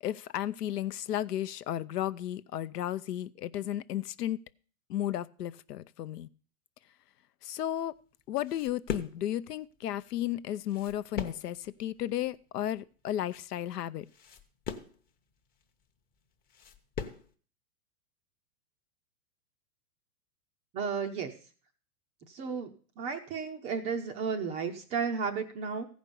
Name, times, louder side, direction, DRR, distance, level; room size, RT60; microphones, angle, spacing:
voice 1, 0.0-4.4 4.9-6.3 7.4-7.9 8.3-14.0, left 12 dB, 85° left, 0.7 m, -34 dB
sound 1, 7.8-17.3, left 6 dB, 20° left, 0.8 m, -42 dB
voice 2, 20.7-21.3 22.3-22.7 23.0-25.9, right 6 dB, 15° right, 0.4 m, -33 dB
14.5 x 5.2 x 6.8 m
hypercardioid pair, 140°, 46 cm